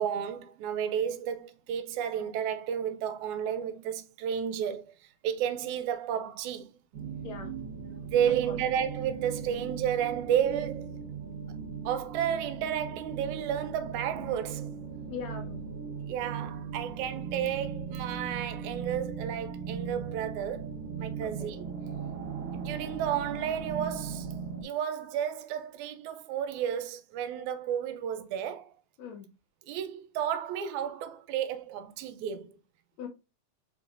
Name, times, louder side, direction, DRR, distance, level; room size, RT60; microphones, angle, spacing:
voice 1, 0.0-5.0 5.2-6.7 8.1-11.0 11.9-14.7 16.1-20.7 21.0-21.7 22.5-24.4 24.6-28.7 29.7-32.5, right 9 dB, 80° right, 2.0 m, -32 dB
sound 1, 6.9-24.6, right 6 dB, 60° right, 1.8 m, -38 dB
voice 2, 7.2-7.5 8.3-8.6 15.1-15.6 21.2-21.5 29.0-29.3 33.0-33.1, left 6 dB, 70° left, 1.9 m, -41 dB
5.0 x 3.8 x 2.5 m
omnidirectional pair, 3.4 m